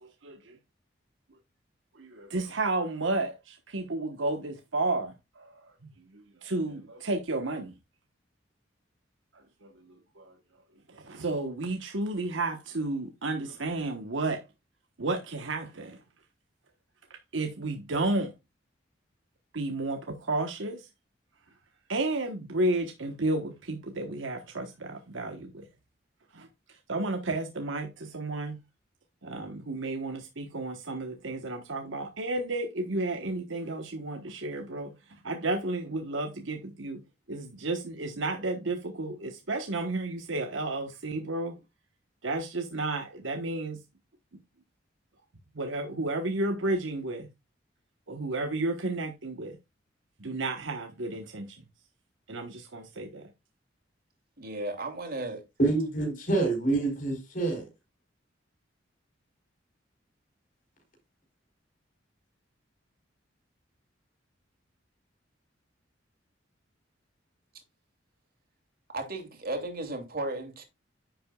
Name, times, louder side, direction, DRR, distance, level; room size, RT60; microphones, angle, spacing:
voice 1, 0.2-0.6 2.0-5.5 6.1-7.7 9.6-9.7 10.2-10.3 10.9-14.4 15.0-16.0 17.3-18.3 19.5-20.9 21.9-25.6 26.3-26.5 26.9-28.6 29.2-34.9 35.2-37.0 37.3-41.6 42.2-43.8 45.5-47.3 48.1-49.6 50.2-51.6 52.3-53.3, right 2 dB, 85° right, 1.2 m, -32 dB
voice 2, 54.4-55.4 68.9-70.6, right 2 dB, 50° right, 2.8 m, -35 dB
voice 3, 55.6-57.6, right 3 dB, 45° left, 4.3 m, -26 dB
10.0 x 7.7 x 2.3 m
head